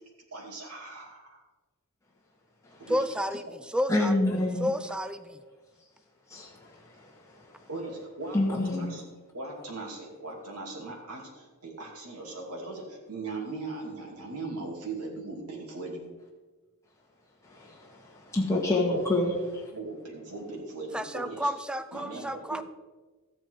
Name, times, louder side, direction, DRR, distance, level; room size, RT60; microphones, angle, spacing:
voice 1, 0.3-1.4 2.8-3.1 7.7-9.1 9.3-16.2 18.8-19.0 19.7-21.5 21.9-22.6, right 3 dB, 85° right, -1 dB, 2.7 m, -39 dB
voice 2, 2.9-3.4 3.7-4.1 4.6-5.4 20.9-22.6, equal, 5° right, 11 dB, 0.5 m, -30 dB
voice 3, 3.9-4.7 6.3-6.5 8.3-8.9 17.5-17.8 18.3-19.6, left 2 dB, 15° left, -3 dB, 1.9 m, -26 dB
13.5 x 8.4 x 4.8 m, 1.3 s
head